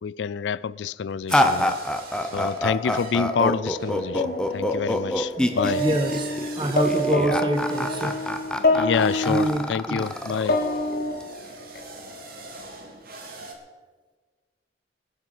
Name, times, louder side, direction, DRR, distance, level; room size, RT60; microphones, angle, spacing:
voice 1, 0.0-1.8 2.3-5.8 8.6-10.6, left 6 dB, 85° left, 0.4 m, -27 dB
sound 1, 1.3-11.2, left 1 dB, 5° left, 0.9 m, -26 dB
sound 2, 1.3-13.5, right 3 dB, 55° right, 2.2 m, -43 dB
sound 3, 4.1-5.3 5.6-9.5 10.2-11.8, left 2 dB, 55° left, 1.5 m, -26 dB
voice 2, 5.8-6.3 6.5-8.2 9.3-10.1, right 1 dB, 25° right, 1.3 m, -26 dB
20.5 x 7.6 x 6.1 m
head